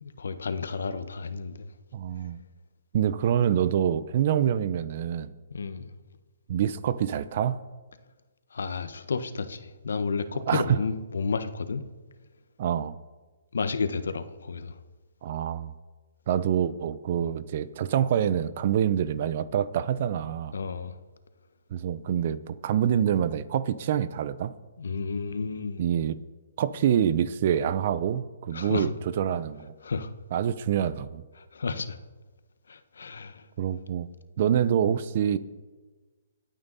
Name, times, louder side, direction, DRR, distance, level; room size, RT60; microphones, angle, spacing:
voice 1, 0.0-1.7 5.5-5.9 8.5-11.8 13.5-14.8 20.5-20.9 24.8-25.8 28.5-28.9 29.8-30.1 31.4-32.0 32.7-33.5, left 4 dB, 80° left, 10 dB, 1.3 m, -31 dB
voice 2, 1.9-2.4 2.9-5.3 6.5-7.6 10.5-10.8 12.6-13.0 15.2-15.7 16.3-20.5 21.7-24.5 25.8-26.2 26.6-29.7 30.3-31.2 33.6-34.1 34.4-35.4, right 9 dB, 45° right, 16 dB, 0.7 m, -26 dB
25.5 x 9.1 x 4.2 m, 1.3 s
hypercardioid pair, 155°, 0 cm